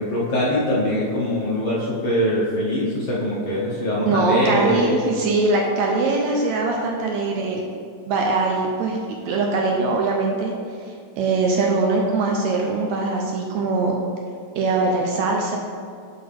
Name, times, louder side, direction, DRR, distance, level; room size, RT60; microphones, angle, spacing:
voice 1, 0.0-5.0, left 1 dB, 60° left, -7 dB, 1.6 m, -22 dB
voice 2, 4.1-7.6 8.1-9.0 9.3-10.5 11.2-13.9 14.6-15.6, right 3 dB, 75° right, 0 dB, 1.7 m, -22 dB
7.5 x 5.5 x 3.4 m, 2.3 s
omnidirectional pair, 3.6 m